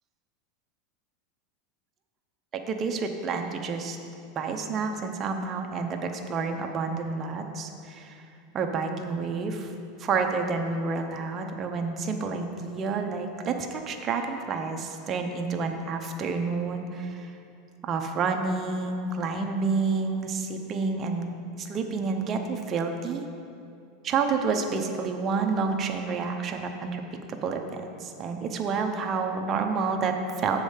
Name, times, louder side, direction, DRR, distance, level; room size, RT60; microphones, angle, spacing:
voice 1, 2.7-4.0 4.4-8.2 8.5-9.7 10.0-17.3 17.8-23.2 24.0-30.6, right 4 dB, 25° right, 4 dB, 0.6 m, -29 dB
7.3 x 5.0 x 7.2 m, 2.5 s
supercardioid pair, 160°, 0 cm